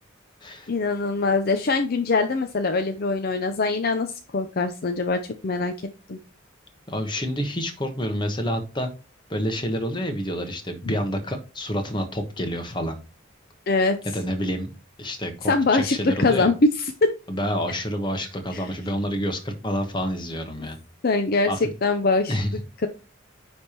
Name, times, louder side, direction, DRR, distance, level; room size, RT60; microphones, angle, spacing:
voice 1, 0.7-5.8 6.1-6.2 10.9-11.0 13.7-14.0 15.5-16.5 17.0-17.1 18.5-18.6 21.0-21.5 21.8-22.4, left 3 dB, 50° left, 7 dB, 0.6 m, -23 dB
voice 2, 6.9-8.9 9.3-13.0 14.1-14.7 15.0-16.5 17.3-20.8 21.5-21.7 22.3-22.5, equal, 25° left, 5 dB, 1.2 m, -28 dB
9.7 x 3.5 x 4.4 m, 0.33 s
head